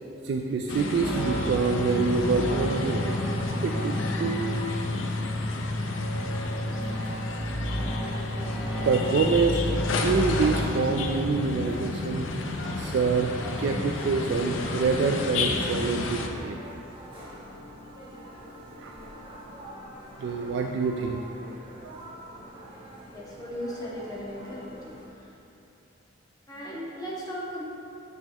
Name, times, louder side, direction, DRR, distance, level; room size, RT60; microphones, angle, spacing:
voice 1, 0.2-3.2 3.6-4.5 8.8-9.6 10.0-12.3 12.8-16.6 18.8-19.1 20.2-21.2 21.8-22.0, right 4 dB, 60° right, 2 dB, 0.3 m, -26 dB
sound 1, 0.7-16.3, left 3 dB, 80° left, 0.5 m, -32 dB
sound 2, 1.0-11.2, equal, ahead, 1.2 m, -32 dB
sound 3, 6.1-25.1, equal, 25° right, 1.1 m, -45 dB
voice 2, 23.1-24.7 25.1-25.3 26.5-27.6, equal, 20° left, -6 dB, 0.9 m, -36 dB
6.7 x 5.9 x 2.9 m, 2.7 s
head